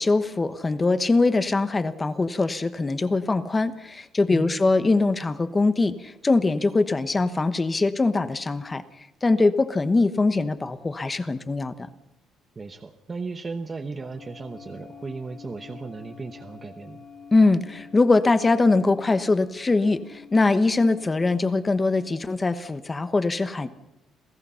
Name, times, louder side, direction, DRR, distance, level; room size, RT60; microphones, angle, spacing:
voice 1, 0.0-8.8 9.2-11.9 17.3-23.7, left 3 dB, 15° left, 12 dB, 1.1 m, -22 dB
voice 2, 12.6-17.0, right 4 dB, 20° right, 6 dB, 1.0 m, -36 dB
sound 1, 14.0-22.1, left 5 dB, 40° left, 2.7 m, -48 dB
27.5 x 17.0 x 5.7 m, 0.93 s
cardioid pair, 155°, 0 cm